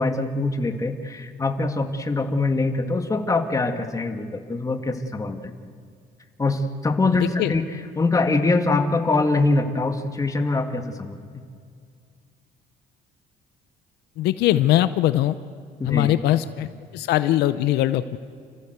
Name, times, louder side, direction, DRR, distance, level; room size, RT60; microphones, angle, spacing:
voice 1, 0.0-5.5 6.4-7.6 8.0-11.2 15.8-16.2, left 3 dB, 20° left, 5 dB, 1.9 m, -23 dB
voice 2, 7.2-7.5 14.2-15.4 15.8-18.2, left 13 dB, 80° left, 13 dB, 0.7 m, -21 dB
29.0 x 15.5 x 8.1 m, 2.2 s
cardioid pair, 110°, 17 cm